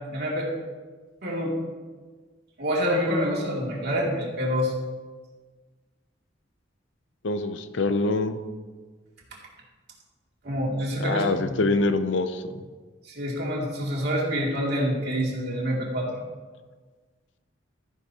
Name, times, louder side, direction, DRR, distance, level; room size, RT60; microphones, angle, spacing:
voice 1, 0.1-0.5 1.2-1.5 2.6-4.7 10.4-11.6 13.0-16.2, equal, 60° right, -3 dB, 2.5 m, -27 dB
voice 2, 7.2-8.4 11.0-12.5, left 2 dB, 70° left, 9 dB, 0.7 m, -25 dB
13.5 x 10.0 x 2.9 m, 1.4 s
head